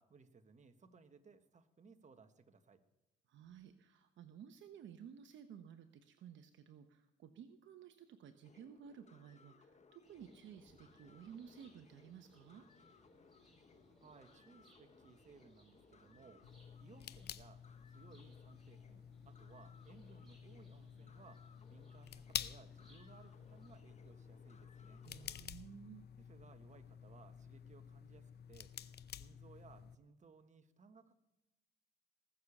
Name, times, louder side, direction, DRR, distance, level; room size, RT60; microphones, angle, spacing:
voice 1, 0.0-2.8 14.0-16.4 16.8-17.6 17.9-25.0 26.2-28.7 29.2-31.2, right 4 dB, 35° right, 8 dB, 1.4 m, -62 dB
voice 2, 3.3-12.7 25.0-26.0, right 8 dB, 70° right, 8 dB, 0.9 m, -55 dB
sound 1, 8.4-25.5, left 4 dB, 35° left, 1.2 m, -67 dB
sound 2, 10.0-23.8, left 1 dB, ahead, 6.1 m, -69 dB
sound 3, 16.4-30.0, left 9 dB, 55° left, 0.7 m, -50 dB
19.0 x 6.8 x 7.2 m, 1.0 s
cardioid pair, 90°, 20 cm